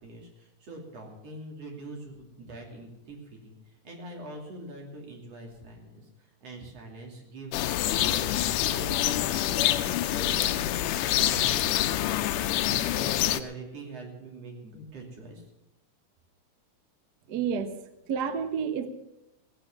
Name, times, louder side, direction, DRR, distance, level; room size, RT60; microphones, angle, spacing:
voice 1, 0.0-15.4, right 2 dB, 50° right, 0 dB, 3.8 m, -44 dB
sound 1, 7.5-13.4, left 13 dB, 85° left, 2.2 m, -26 dB
voice 2, 17.3-17.7 18.1-18.9, right 7 dB, 80° right, 9 dB, 0.9 m, -29 dB
17.5 x 9.0 x 7.3 m, 0.90 s
omnidirectional pair, 3.6 m